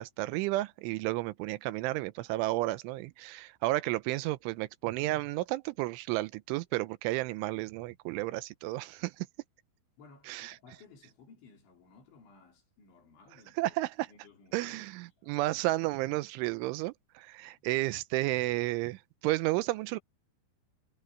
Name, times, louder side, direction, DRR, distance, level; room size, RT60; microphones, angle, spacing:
voice 1, 0.0-9.3 10.3-10.5 13.6-14.1 14.5-20.0, right 19 dB, 90° right, 3.2 m, -32 dB
voice 2, 10.0-14.9 15.2-15.4 17.4-18.0, left 4 dB, 75° left, 7.0 m, -58 dB
omnidirectional pair, 5.4 m